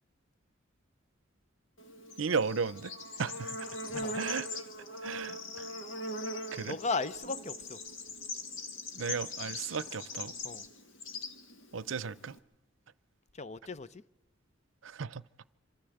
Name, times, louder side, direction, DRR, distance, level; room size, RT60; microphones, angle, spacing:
Bird / Insect, 1.8-12.4, left 2 dB, 75° left, 2.0 m, -41 dB
voice 1, 2.2-2.9 3.2-3.6 4.1-4.6 5.0-5.7 6.5-6.8 9.0-10.3 11.7-12.4 14.8-15.2, right 5 dB, 75° right, 0.6 m, -35 dB
voice 2, 3.9-4.2 6.7-7.8 10.4-10.6 13.3-14.0, left 4 dB, 35° left, 0.6 m, -36 dB
26.0 x 13.5 x 7.8 m
head